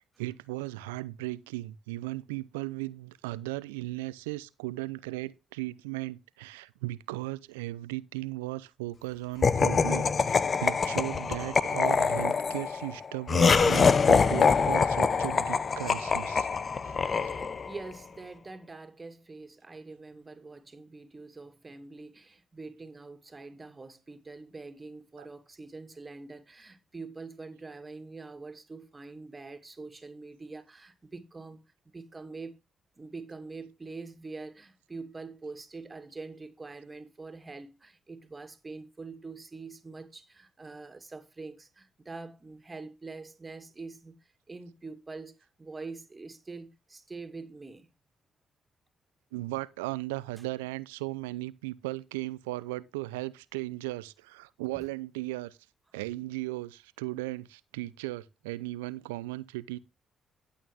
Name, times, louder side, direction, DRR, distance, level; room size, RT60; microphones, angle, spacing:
voice 1, 0.2-16.5 16.8-17.3 25.2-25.3 49.3-55.6 55.9-59.8, right 19 dB, 90° right, 0.6 m, -37 dB
Laughter, 9.4-17.8, left 5 dB, 45° left, 0.8 m, -25 dB
voice 2, 17.0-32.6 33.0-47.9 54.8-54.9, right 3 dB, 30° right, 2.5 m, -44 dB
11.5 x 8.6 x 3.6 m
hypercardioid pair, 50°, 0 cm